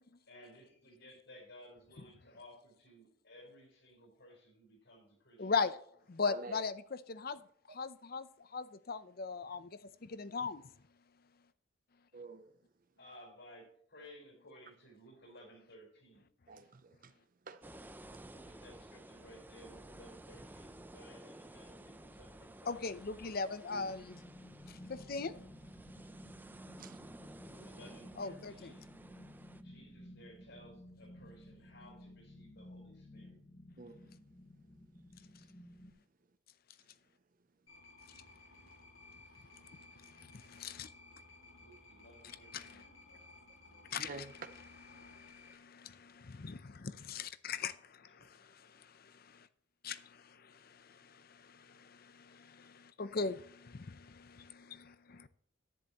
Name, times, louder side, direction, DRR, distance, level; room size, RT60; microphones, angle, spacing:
voice 1, 0.3-5.5 13.0-16.3 18.3-22.9 27.5-29.0 29.6-33.4 41.5-43.3 43.6-44.0 44.3-44.4, equal, 70° left, 4.7 m, -58 dB
voice 2, 5.4-5.8 6.1-7.4 7.7-8.3 8.5-10.6 22.7-24.2 24.7-25.4 28.2-28.7 40.2-40.9 42.5-42.8 43.9-44.3 44.9-49.5 49.8-55.3, left 5 dB, 50° left, 0.6 m, -40 dB
voice 3, 6.2-6.6 12.1-12.5 16.5-17.1 17.5-17.6 23.7-23.9 26.8-27.0 33.8-34.1 44.0-44.3, right 4 dB, 45° right, 0.6 m, -48 dB
sound 1, 17.6-29.6, right 1 dB, 10° right, 0.5 m, -54 dB
sound 2, 23.7-35.9, left 1 dB, 20° left, 1.4 m, -54 dB
sound 3, 37.7-45.5, left 2 dB, 90° left, 4.4 m, -58 dB
10.5 x 10.5 x 3.0 m
head